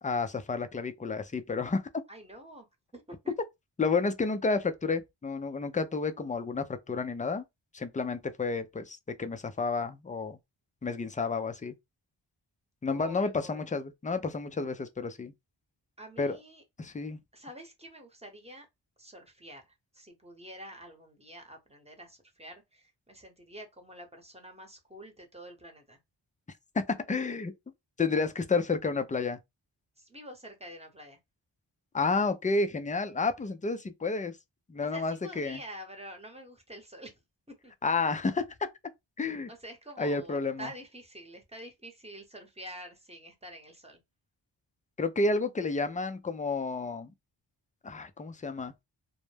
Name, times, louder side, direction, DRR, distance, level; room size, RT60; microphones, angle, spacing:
voice 1, 0.0-1.8 3.8-7.4 7.7-10.4 10.8-11.7 12.8-15.3 16.2-16.4 16.8-17.2 26.7-27.5 28.0-29.4 31.9-34.3 34.7-35.6 37.8-38.7 39.2-39.5 40.0-40.7 45.0-47.1 47.8-48.7, left 4 dB, 20° left, 0.4 m, -30 dB
voice 2, 2.1-2.7 2.9-3.3 12.9-13.7 16.0-16.6 17.3-18.7 19.0-26.0 30.0-31.2 34.8-37.1 37.5-37.7 39.5-44.0, equal, 15° right, 0.9 m, -47 dB
2.2 x 2.0 x 3.2 m
cardioid pair, 50°, 47 cm